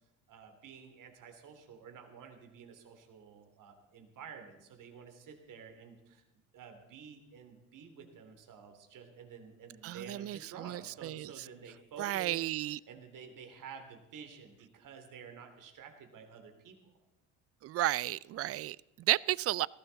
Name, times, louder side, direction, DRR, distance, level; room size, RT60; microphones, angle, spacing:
voice 1, 0.3-6.2 6.5-16.9, right 6 dB, 55° right, 5 dB, 2.9 m, -51 dB
voice 2, 9.8-11.3 12.0-12.8 17.6-19.7, right 15 dB, 40° right, 23 dB, 0.4 m, -33 dB
18.0 x 14.5 x 4.0 m, 0.96 s
supercardioid pair, 85°, 37 cm